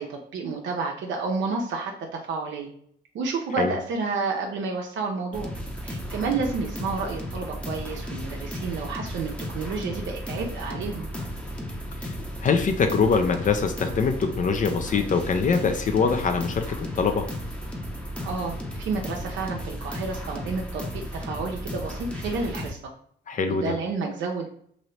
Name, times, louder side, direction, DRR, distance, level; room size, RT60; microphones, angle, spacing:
voice 1, 0.0-2.7 3.1-5.5 5.8-11.1 18.2-22.9 23.5-24.5, right 4 dB, 70° right, 1 dB, 0.6 m, -30 dB
sound 1, 5.3-22.7, equal, 5° left, 0.7 m, -34 dB
voice 2, 12.4-17.3 23.3-23.7, left 5 dB, 40° left, 7 dB, 0.4 m, -23 dB
2.8 x 2.7 x 3.1 m, 0.64 s
cardioid pair, 90°, 20 cm